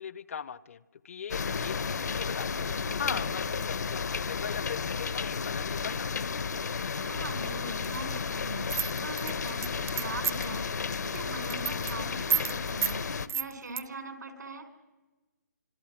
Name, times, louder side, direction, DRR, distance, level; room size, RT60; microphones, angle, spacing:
voice 1, 0.0-2.7 3.0-6.3, left 7 dB, 50° left, 20 dB, 0.7 m, -39 dB
sound 1, 1.3-13.3, left 5 dB, 70° left, 1.0 m, -33 dB
voice 2, 3.0-3.3 7.0-14.7, right 3 dB, 80° right, 8 dB, 4.1 m, -42 dB
sound 2, 8.7-10.6 10.9-11.2 11.4-11.9 12.3-12.5 12.8-13.0 13.3-13.8, right 8 dB, 50° right, 0.7 m, -29 dB
25.5 x 23.5 x 6.0 m, 1.2 s
hypercardioid pair, 155°, 9 cm